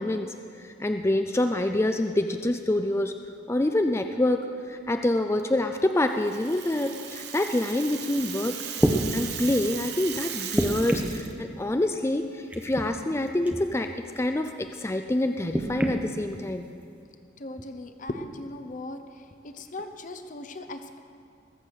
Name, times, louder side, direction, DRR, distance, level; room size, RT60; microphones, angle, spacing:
voice 1, 0.0-3.2 3.5-8.5 9.1-13.9 14.2-16.7, left 1 dB, 15° left, 6 dB, 0.4 m, -26 dB
Rattle (instrument), 6.1-11.3, right 9 dB, 60° right, 1.1 m, -37 dB
sound 1, 8.8-9.0 10.5-11.2 12.5-12.9 13.5-13.6 15.5-16.0 16.9-17.0, right 1 dB, 5° right, 0.8 m, -26 dB
voice 2, 17.4-19.0 19.4-21.0, left 2 dB, 40° left, 8 dB, 0.7 m, -38 dB
20.5 x 7.4 x 6.4 m, 2.3 s
head